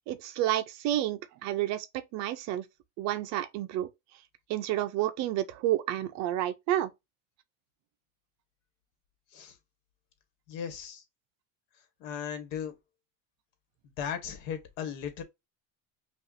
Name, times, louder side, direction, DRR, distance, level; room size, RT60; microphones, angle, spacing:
voice 1, 0.1-1.9 2.1-2.6 3.0-3.9 4.5-6.9, right 13 dB, 45° right, 0.5 m, -30 dB
voice 2, 10.5-11.0 12.0-12.7 14.0-15.2, left 8 dB, 65° left, 1.4 m, -36 dB
5.5 x 2.4 x 2.6 m
cardioid pair, 160°, 39 cm